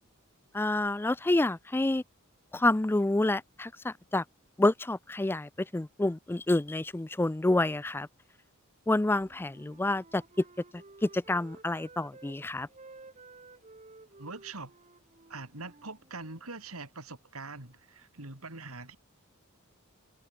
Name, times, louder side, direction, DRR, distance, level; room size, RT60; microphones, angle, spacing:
voice 1, 0.5-2.0 2.5-4.2 4.6-8.1 8.9-10.2 11.0-12.7, left 2 dB, 10° left, 0.4 m, -28 dB
Wind instrument woodwind instrument, 9.1-12.4 12.7-16.4, right 3 dB, 30° right, 1.9 m, -54 dB
voice 2, 14.2-14.7 15.3-19.0, right 3 dB, 85° right, 4.5 m, -43 dB
head